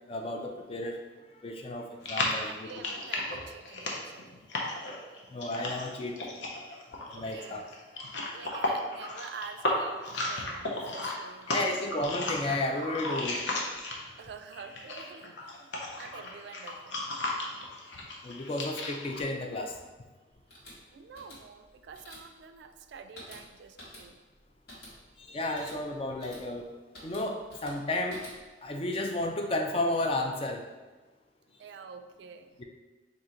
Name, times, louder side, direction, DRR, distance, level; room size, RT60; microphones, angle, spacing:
voice 1, 0.1-1.0 1.4-2.7 5.3-6.2 7.1-7.6 11.5-13.4 18.2-19.8 25.2-26.6 27.0-28.2 28.6-30.6 32.6-32.7, left 2 dB, 30° left, 3 dB, 0.4 m, -32 dB
sound 1, 2.0-14.2 14.5-19.2, left 2 dB, 80° left, 0.7 m, -35 dB
voice 2, 2.4-4.3 7.1-7.6 8.3-11.8 14.2-15.7 16.0-17.0 20.9-24.2 31.6-32.6, right 5 dB, 65° right, 8 dB, 0.3 m, -47 dB
sound 2, 20.3-28.7, left 1 dB, 60° left, 1.2 m, -51 dB
3.8 x 2.7 x 4.3 m, 1.2 s
head